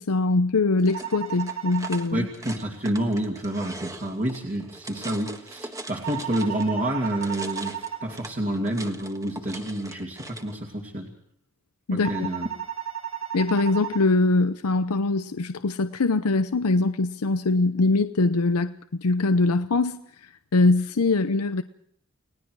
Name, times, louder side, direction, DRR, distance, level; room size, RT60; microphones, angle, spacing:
voice 1, 0.0-2.3 11.9-12.3 13.3-21.6, left 3 dB, 85° left, 0.7 m, -23 dB
sound 1, 0.8-6.7 7.0-10.6, right 2 dB, 15° right, 1.5 m, -41 dB
sound 2, 0.9-2.0 6.0-8.0 12.0-14.0, right 10 dB, 65° right, 5.8 m, -34 dB
voice 2, 2.1-11.1 11.9-12.5, right 1 dB, 40° right, 2.6 m, -29 dB
30.0 x 19.0 x 4.8 m
head